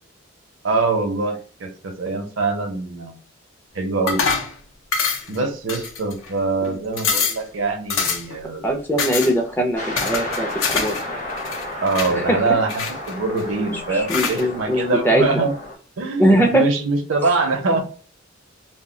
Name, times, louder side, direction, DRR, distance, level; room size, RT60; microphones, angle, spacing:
voice 1, 0.6-3.2 3.7-4.3 5.3-8.6 11.8-15.5 16.0-17.8, right 3 dB, 65° right, 5 dB, 0.5 m, -23 dB
sound 1, 4.1-4.5 4.9-5.4 5.7-6.3 6.6-6.7 7.0-7.4 7.9-8.4 9.0-9.3 10.0-11.0 11.3-12.1 12.7-13.4 14.1-14.4, left 5 dB, 75° left, 0.5 m, -24 dB
voice 2, 8.6-11.0 12.1-12.4 13.9-15.4 16.2-16.6, right 1 dB, 10° left, 2 dB, 0.4 m, -20 dB
sound 2, 9.7-15.7, left 1 dB, 40° left, 0.9 m, -32 dB
2.2 x 2.1 x 3.6 m, 0.41 s
head